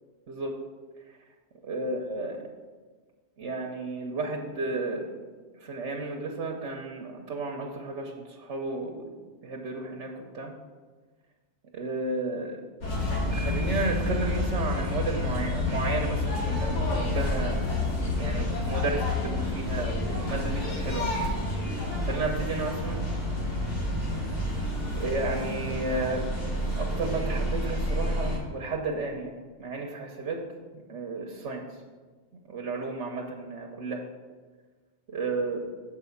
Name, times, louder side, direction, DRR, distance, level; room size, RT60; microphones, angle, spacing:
voice 1, 1.6-2.4 3.4-5.1 5.6-9.1 9.4-10.5 11.7-12.6 13.3-17.6 18.2-21.2 22.0-23.0 24.9-26.3 26.7-30.4 30.9-31.6 32.5-34.1 35.1-35.6, right 3 dB, 80° right, 1 dB, 1.2 m, -32 dB
sound 1, 12.8-28.4, left 1 dB, 80° left, 1.9 m, -29 dB
7.2 x 4.8 x 7.1 m, 1.4 s
omnidirectional pair, 1.2 m